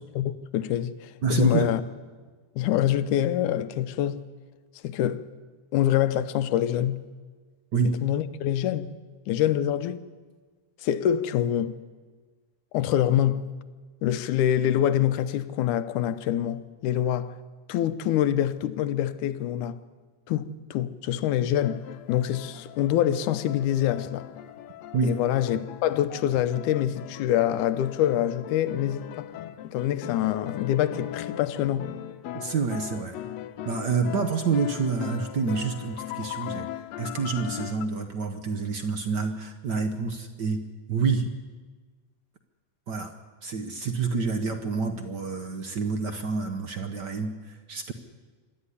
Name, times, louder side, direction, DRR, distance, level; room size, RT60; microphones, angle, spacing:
voice 1, 0.2-1.8 2.6-4.2 4.8-5.2 5.7-7.0 7.8-8.9 9.3-10.0 10.8-11.7 12.7-13.5 14.0-17.4 17.7-19.8 20.3-24.3 25.0-29.3 29.6-31.9, left 11 dB, 90° left, 2.3 m, -25 dB
voice 2, 1.2-1.7 7.7-8.0 24.9-25.2 32.3-33.2 33.6-36.7 37.0-40.6 40.9-41.3 42.9-43.1 43.4-47.9, right 5 dB, 65° right, 1.0 m, -28 dB
sound 1, 21.6-37.9, left 12 dB, 70° left, 1.9 m, -39 dB
25.5 x 12.5 x 9.9 m
omnidirectional pair, 3.4 m